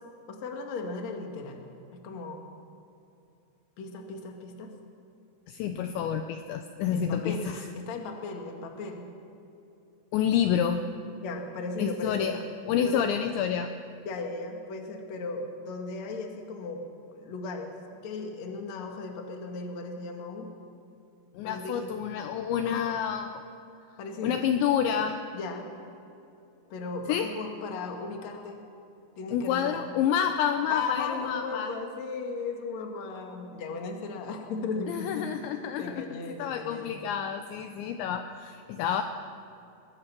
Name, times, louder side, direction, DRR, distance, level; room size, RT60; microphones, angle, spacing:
voice 1, 0.3-1.6 1.9-2.4 3.8-4.7 6.9-7.5 7.7-9.1 11.2-12.4 12.8-13.1 14.1-16.8 17.1-17.7 18.0-20.5 21.4-21.9 22.6-22.9 24.0-24.4 25.3-25.7 26.7-28.6 29.2-29.8 30.7-35.3 35.8-37.0, left 3 dB, 45° left, 3 dB, 2.5 m, -36 dB
voice 2, 5.5-7.7 10.1-10.8 11.8-12.4 12.7-13.7 21.3-23.5 24.2-25.2 27.1-27.3 29.3-31.7 34.9-39.0, left 8 dB, 80° left, 7 dB, 2.8 m, -29 dB
23.0 x 20.5 x 6.0 m, 2.8 s
omnidirectional pair, 5.7 m